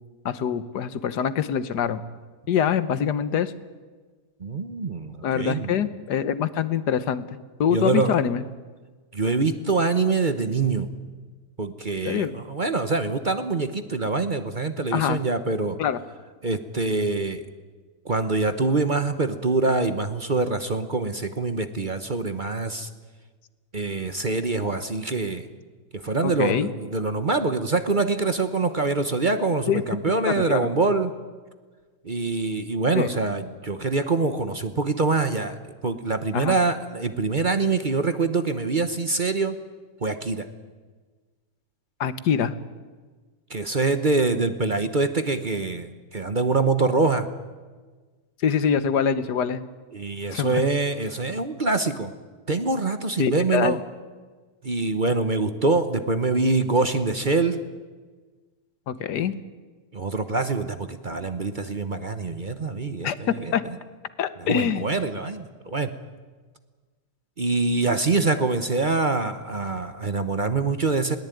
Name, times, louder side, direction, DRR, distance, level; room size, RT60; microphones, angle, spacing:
voice 1, 0.2-2.0 2.5-3.5 5.2-7.2 7.6-8.4 12.0-12.3 14.9-15.2 15.8-16.0 26.2-26.7 29.7-29.8 30.3-30.7 32.9-33.1 36.3-36.6 42.0-42.5 48.4-49.6 50.3-50.6 53.2-53.8 58.9-59.4 63.0-63.1 63.5-63.6 64.2-64.8, left 8 dB, 80° left, 14 dB, 1.6 m, -24 dB
voice 2, 4.4-5.8 7.7-8.1 9.1-10.9 11.6-15.8 16.4-17.4 18.0-22.9 23.7-25.5 25.9-31.1 32.0-39.6 40.0-40.5 43.5-47.3 49.9-52.1 52.5-53.8 54.6-57.6 59.9-63.6 64.4-65.9 67.4-71.2, right 3 dB, 35° right, 9 dB, 1.0 m, -25 dB
21.0 x 18.5 x 9.2 m, 1.4 s
omnidirectional pair, 1.8 m